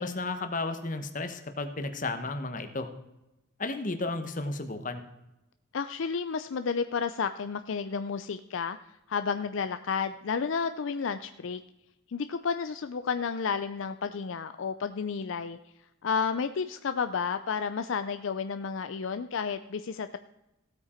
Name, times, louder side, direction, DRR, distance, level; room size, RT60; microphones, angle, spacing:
voice 1, 0.0-2.9 3.6-5.0, left 2 dB, 35° left, 8 dB, 1.1 m, -33 dB
voice 2, 5.7-8.8 9.1-11.6 12.1-15.6 16.0-20.2, left 5 dB, 65° left, 10 dB, 0.4 m, -31 dB
15.5 x 8.7 x 4.4 m, 0.94 s
head